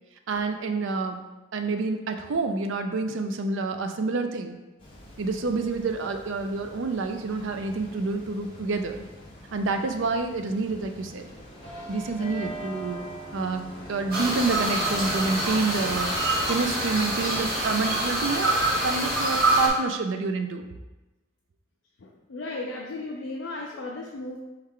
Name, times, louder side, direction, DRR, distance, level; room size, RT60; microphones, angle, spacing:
voice 1, 0.3-1.2 1.5-4.6 5.2-9.0 9.5-11.3 11.9-13.0 13.3-16.1 16.5-18.5 18.8-20.6, right 3 dB, 65° right, 7 dB, 0.4 m, -28 dB
sound 1, 4.8-17.6, equal, 25° left, 0.8 m, -42 dB
sound 2, 14.1-19.7, right 1 dB, 50° right, 1.1 m, -25 dB
voice 2, 22.0-24.4, left 2 dB, 60° left, -2 dB, 0.4 m, -35 dB
4.6 x 3.1 x 3.7 m, 1.1 s
head